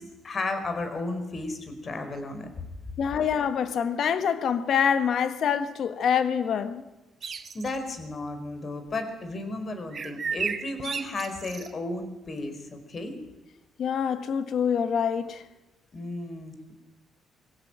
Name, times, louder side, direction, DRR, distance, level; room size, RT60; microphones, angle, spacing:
voice 1, 0.0-2.5 7.5-13.2 15.9-16.7, left 2 dB, 40° left, 4.7 m, -34 dB
voice 2, 3.0-6.8 13.8-15.4, left 7 dB, 65° left, 1.6 m, -25 dB
sound 1, 7.2-7.8 9.9-11.7, right 6 dB, 45° right, 1.7 m, -33 dB
24.0 x 16.5 x 9.1 m
cardioid pair, 90°, 0 cm